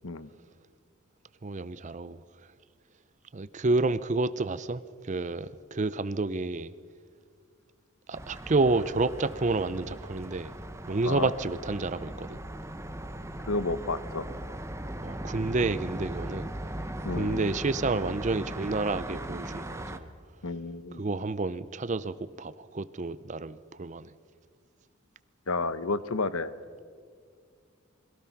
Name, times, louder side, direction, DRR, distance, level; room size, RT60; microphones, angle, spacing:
voice 1, 1.4-2.2 3.3-6.7 8.1-10.5 10.9-12.4 15.0-16.5 17.2-20.1 20.9-24.1, right 3 dB, 35° right, 16 dB, 0.5 m, -29 dB
sound 1, 8.1-20.0, right 1 dB, 15° right, 1.0 m, -38 dB
voice 2, 13.5-14.3 17.0-17.5 20.4-21.0 25.5-26.5, left 3 dB, 75° left, 14 dB, 1.0 m, -31 dB
28.0 x 22.0 x 5.9 m, 2.1 s
head